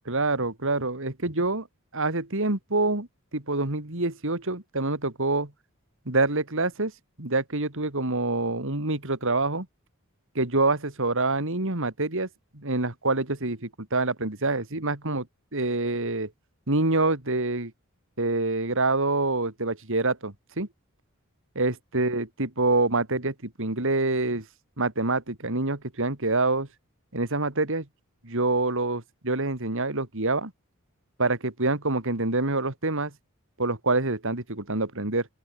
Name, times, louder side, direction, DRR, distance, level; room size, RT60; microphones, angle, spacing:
voice 1, 0.1-1.7 1.9-3.1 3.3-5.5 6.0-6.9 7.2-9.7 10.3-12.3 12.5-15.3 15.5-16.3 16.7-17.7 18.2-20.7 21.5-24.5 24.8-26.7 27.1-27.9 28.2-30.5 31.2-33.1 33.6-35.3, right 2 dB, 65° right, 3.3 m, -26 dB
open air
head